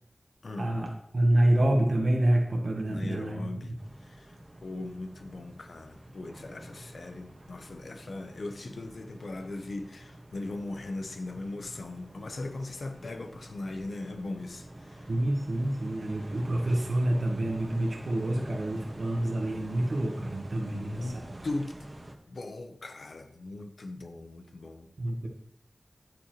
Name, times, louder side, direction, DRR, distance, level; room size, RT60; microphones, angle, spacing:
voice 1, 0.6-3.4 15.1-21.4 25.0-25.3, right 1 dB, 70° right, 1.1 m, -27 dB
voice 2, 2.9-3.8 4.0-15.1 20.6-21.8 22.3-24.9, left 2 dB, 85° left, 0.8 m, -39 dB
sound 1, 3.8-22.1, right 1 dB, 40° right, 1.4 m, -47 dB
9.8 x 8.7 x 3.0 m
wide cardioid pair, 65°, 0 cm